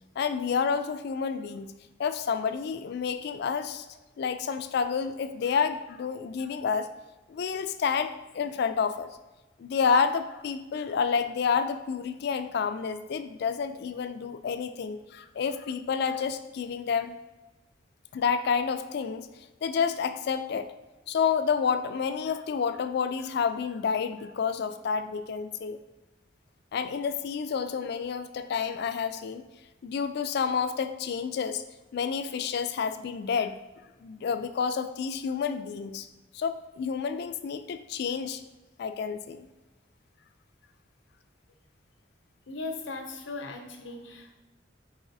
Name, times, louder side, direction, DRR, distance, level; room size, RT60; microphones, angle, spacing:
voice 1, 0.2-1.7 2.0-3.9 4.2-6.9 7.3-9.1 9.6-17.2 18.1-19.3 19.6-20.7 21.1-25.8 26.7-29.4 29.8-31.6 31.9-33.6 34.0-36.1 36.3-38.4 38.8-39.5, left 6 dB, 60° left, 10 dB, 0.3 m, -29 dB
voice 2, 42.5-44.3, left 3 dB, 85° left, 4 dB, 0.7 m, -38 dB
4.8 x 4.1 x 2.6 m, 1.1 s
head